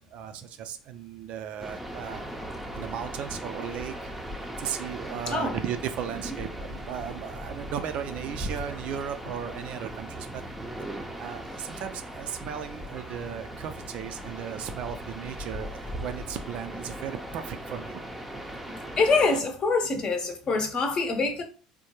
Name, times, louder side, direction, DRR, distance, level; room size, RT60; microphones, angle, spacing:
voice 1, 0.1-2.3 2.7-4.0 4.6-10.4 11.2-18.0, right 8 dB, 55° right, 0.4 m, -36 dB
sound 1, 1.6-19.4, equal, 5° right, 0.6 m, -38 dB
voice 2, 19.0-21.4, left 3 dB, 35° left, 0.8 m, -25 dB
3.5 x 2.2 x 2.9 m
figure-of-eight pair, 65°, 2 cm